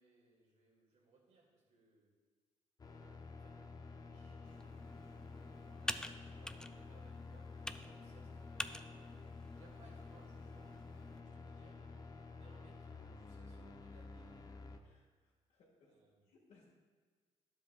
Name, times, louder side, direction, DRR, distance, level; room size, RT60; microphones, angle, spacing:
voice 1, 0.0-2.2 2.8-3.7 4.1-9.1 9.5-14.6 15.8-16.3, right 3 dB, 70° right, -2 dB, 2.1 m, -68 dB
sound 1, 2.8-14.8, left 4 dB, 30° left, 0.7 m, -51 dB
Computer keyboard, 4.4-11.2, left 1 dB, 5° left, 0.3 m, -48 dB
voice 2, 14.8-16.0 16.3-16.7, left 4 dB, 75° left, -7 dB, 1.7 m, -68 dB
11.5 x 7.5 x 2.3 m, 1.6 s
cardioid pair, 90°, 12 cm